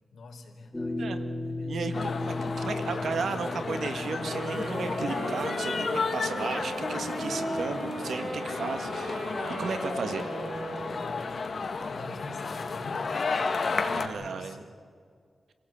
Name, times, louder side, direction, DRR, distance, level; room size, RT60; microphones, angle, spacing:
voice 1, 0.1-1.1 1.4-1.8 11.0-11.3 11.9-13.3 13.7-14.7, left 3 dB, 80° left, 1 dB, 3.8 m, -46 dB
sound 1, 0.7-5.7, left 2 dB, 10° left, 3.5 m, -36 dB
voice 2, 1.6-10.3 13.9-14.6, right 5 dB, 85° right, 8 dB, 1.7 m, -35 dB
sound 2, 1.9-14.1, left 4 dB, 50° left, 2.0 m, -32 dB
Wind instrument woodwind instrument, 4.2-11.2, right 2 dB, 65° right, 4.9 m, -37 dB
27.0 x 17.0 x 8.7 m, 2.1 s
wide cardioid pair, 140°, 0 cm